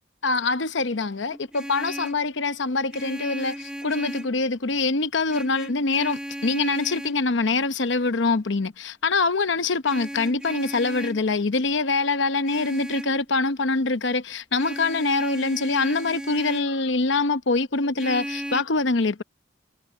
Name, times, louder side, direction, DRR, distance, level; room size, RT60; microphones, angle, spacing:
voice 1, 0.2-19.2, left 3 dB, 70° left, 0.9 m, -24 dB
Vehicle horn car horn honking, 1.3-2.3 2.9-4.4 5.3-7.2 9.8-11.2 12.4-13.2 14.6-16.7 18.0-18.6, equal, 5° right, 1.3 m, -35 dB
head